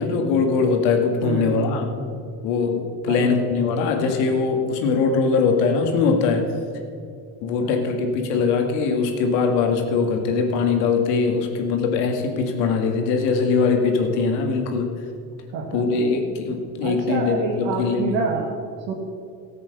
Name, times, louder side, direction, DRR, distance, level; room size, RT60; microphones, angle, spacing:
voice 1, 0.0-1.9 2.4-6.5 7.4-14.9 15.7-18.2, left 4 dB, 80° left, 4 dB, 2.0 m, -21 dB
voice 2, 1.2-2.2 3.1-3.8 7.6-8.1 15.5-16.3 16.8-18.5 18.9-19.0, right 4 dB, 65° right, 0 dB, 1.9 m, -28 dB
14.5 x 8.0 x 6.6 m, 2.5 s
hypercardioid pair, 70°, 48 cm